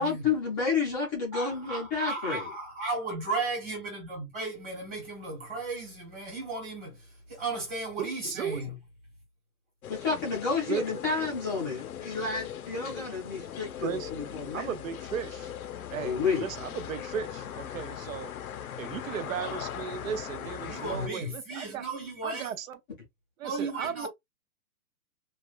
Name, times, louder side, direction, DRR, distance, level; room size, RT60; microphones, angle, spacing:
voice 1, 0.0-2.4 9.9-14.7 16.0-16.5, left 4 dB, 15° left, 0.5 m, -30 dB
voice 2, 1.3-8.7 20.7-22.5 23.4-24.1, right 2 dB, 15° right, 1.4 m, -35 dB
voice 3, 8.0-8.6 10.7-10.8 13.8-15.5 15.9-18.3 18.8-21.8 22.2-22.8 23.4-24.1, right 8 dB, 60° right, 0.8 m, -36 dB
sound 1, 9.8-21.1, left 10 dB, 70° left, 0.7 m, -40 dB
3.3 x 2.3 x 2.4 m
hypercardioid pair, 160°, 44 cm